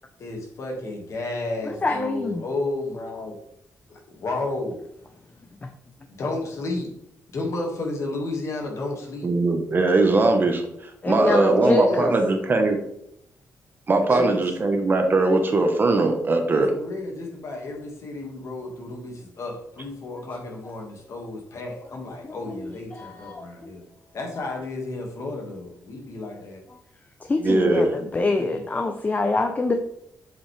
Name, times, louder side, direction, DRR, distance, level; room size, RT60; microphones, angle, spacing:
voice 1, 0.2-3.4 3.9-4.8 6.1-6.9 7.3-9.3 11.2-12.4 14.1-14.5 16.5-23.9 24.1-26.6 28.3-28.6, left 2 dB, 55° left, 1 dB, 1.9 m, -32 dB
voice 2, 1.6-2.4 11.0-12.2 22.3-22.6 22.9-23.7 26.7-26.8 27.2-29.7, left 3 dB, 25° left, 5 dB, 0.6 m, -25 dB
voice 3, 9.2-10.6 11.1-12.8 13.9-16.7 27.4-27.8, right 2 dB, 35° right, 5 dB, 1.1 m, -20 dB
7.4 x 5.5 x 3.3 m, 0.75 s
cardioid pair, 120°, 6 cm